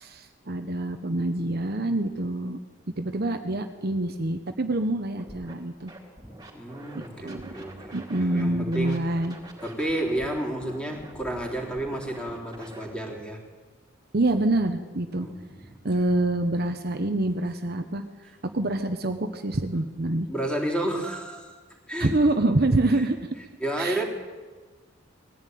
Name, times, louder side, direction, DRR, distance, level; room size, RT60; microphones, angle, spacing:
voice 1, 0.0-2.6 2.9-5.9 6.9-7.5 7.9-9.4 14.1-15.3 15.8-18.0 18.4-20.3 22.0-23.2 23.8-24.0, right 2 dB, 50° right, 7 dB, 1.0 m, -26 dB
Scratching (performance technique), 5.2-5.5 5.9-8.4 8.7-12.9, right 1 dB, 20° right, 3.7 m, -46 dB
voice 2, 6.5-9.1 9.6-13.4 15.2-16.0 20.3-21.5 21.9-22.2 22.9-23.1 23.6-24.0, right 1 dB, 5° left, -1 dB, 3.5 m, -31 dB
20.5 x 14.5 x 9.4 m, 1.4 s
head